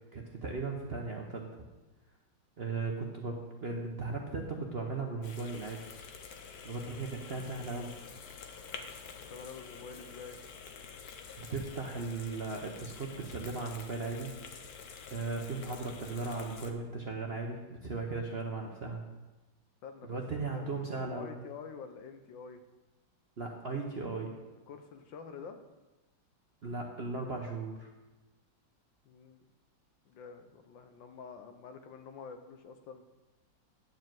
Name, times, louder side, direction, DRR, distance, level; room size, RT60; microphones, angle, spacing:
voice 1, 0.1-1.5 2.6-5.8 6.6-8.0 11.4-14.3 15.1-19.0 20.1-21.3 23.4-24.3 26.6-27.9, right 3 dB, 45° right, 1 dB, 0.8 m, -37 dB
sound 1, 5.2-16.7, left 6 dB, 60° left, 1.3 m, -48 dB
voice 2, 9.3-10.4 19.8-20.1 20.5-20.7 20.9-22.6 24.7-25.6 29.0-29.4 30.0-33.0, left 5 dB, 75° left, 7 dB, 1.5 m, -47 dB
11.0 x 4.8 x 7.6 m, 1.1 s
omnidirectional pair, 2.1 m